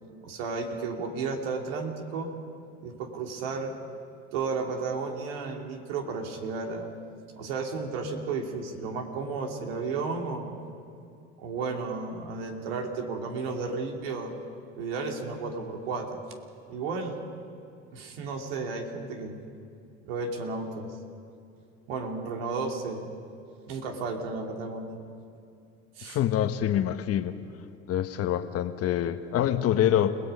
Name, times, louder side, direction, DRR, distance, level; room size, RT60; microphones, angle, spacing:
voice 1, 0.2-2.3 2.8-3.7 4.3-6.9 7.4-10.5 11.4-14.3 14.8-16.2 16.7-17.3 17.9-19.4 20.0-20.9 21.9-23.1 23.7-25.0 26.0-26.2, right 4 dB, 85° right, 2 dB, 2.9 m, -33 dB
voice 2, 26.0-27.3 27.9-30.1, left 11 dB, 55° left, 9 dB, 1.3 m, -25 dB
29.5 x 18.0 x 5.5 m, 2.6 s
supercardioid pair, 85°, 29 cm